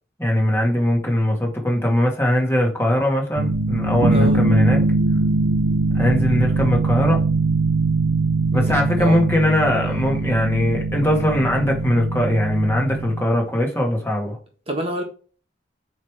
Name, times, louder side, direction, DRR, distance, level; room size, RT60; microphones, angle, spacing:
voice 1, 0.2-4.9 5.9-7.2 8.5-14.4, equal, 15° left, 2.0 m, -20 dB
sound 1, 3.4-13.2, right 3 dB, 85° right, 0.8 m, -21 dB
voice 2, 4.1-4.4 8.5-9.2 14.7-15.0, right 1 dB, 30° right, 1.5 m, -28 dB
8.4 x 3.3 x 4.9 m
head